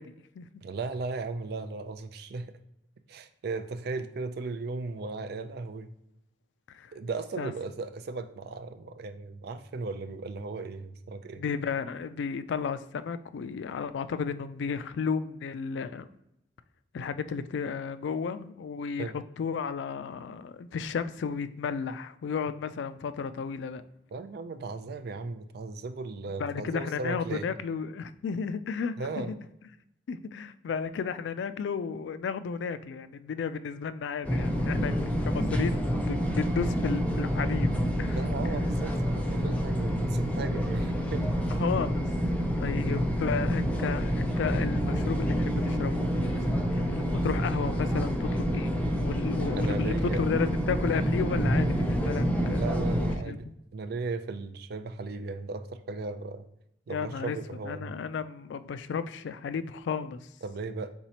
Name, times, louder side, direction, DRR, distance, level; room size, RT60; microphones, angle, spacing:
voice 1, 0.0-0.5 6.7-6.9 7.4-7.5 11.4-16.1 16.9-23.8 26.4-29.4 30.1-35.0 35.2-38.2 41.6-42.1 42.6-52.7 53.0-53.5 56.9-57.4 57.6-60.3, left 6 dB, 80° left, 13 dB, 0.3 m, -33 dB
voice 2, 0.6-2.5 3.1-5.9 6.9-11.4 19.0-19.1 24.1-27.5 29.0-29.3 38.1-41.3 49.5-50.2 52.6-56.5 56.9-57.9 60.4-60.9, right 3 dB, 60° right, 10 dB, 0.4 m, -36 dB
sound 1, 34.2-53.2, equal, 10° left, 0.5 m, -28 dB
4.4 x 4.0 x 2.8 m, 0.82 s
head